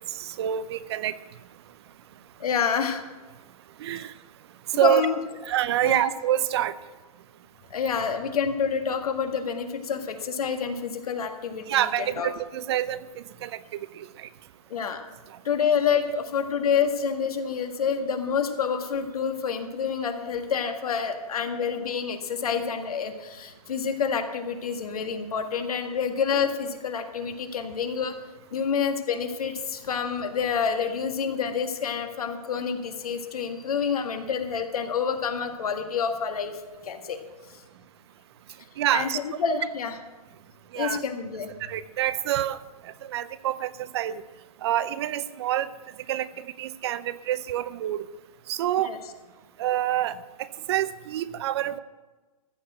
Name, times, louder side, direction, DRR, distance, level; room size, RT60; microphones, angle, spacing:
voice 1, 0.1-1.1 3.8-4.1 4.7-5.0 5.4-6.8 11.7-13.6 14.0-14.3 38.8-39.2 40.7-41.0 41.6-42.6 42.8-44.2 44.6-45.7 46.1-48.1 48.5-48.9 49.6-51.8, right 12 dB, 45° right, 16 dB, 0.6 m, -27 dB
voice 2, 2.4-3.0 4.8-5.2 5.8-6.1 7.7-12.3 14.7-15.0 15.4-28.2 28.5-36.5 36.8-37.2 37.5-37.6 38.9-39.9 40.7-41.5 48.8-49.0, left 6 dB, 75° left, 6 dB, 1.8 m, -28 dB
14.5 x 6.6 x 7.9 m, 1.2 s
hypercardioid pair, 145°, 19 cm